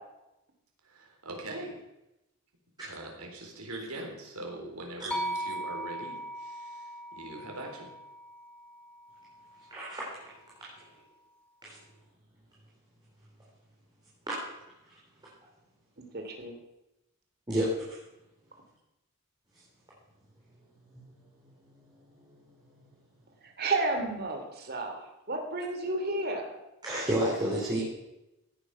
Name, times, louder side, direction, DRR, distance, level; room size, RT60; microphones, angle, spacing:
voice 1, 0.8-1.8 2.8-7.9, right 1 dB, 90° right, 1 dB, 3.8 m, -42 dB
sound 1, 5.1-9.3, right 1 dB, 5° left, 1.3 m, -38 dB
voice 2, 9.7-10.0 10.6-10.7 11.6-11.8 17.5-18.0 22.3-22.4 26.8-27.8, right 1 dB, 20° right, -7 dB, 3.9 m, -30 dB
voice 3, 16.0-16.5 23.4-26.6, right 2 dB, 45° right, 4 dB, 2.7 m, -32 dB
16.5 x 10.0 x 5.9 m, 0.92 s
head